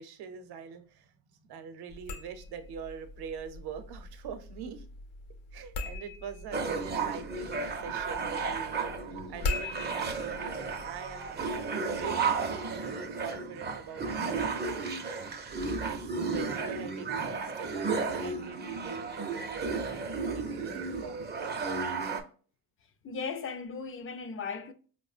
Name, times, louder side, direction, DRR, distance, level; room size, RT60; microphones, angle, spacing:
voice 1, 0.0-4.8 5.5-11.5 11.8-14.9 15.6-21.8, right 6 dB, 60° right, 0.7 m, -44 dB
sound 1, 1.9-11.7, left 3 dB, 75° left, 0.8 m, -41 dB
sound 2, 6.5-22.2, right 4 dB, 25° right, 0.5 m, -33 dB
voice 2, 23.0-24.7, left 5 dB, 30° left, 0.4 m, -37 dB
4.8 x 2.1 x 2.4 m
supercardioid pair, 75°, 45 cm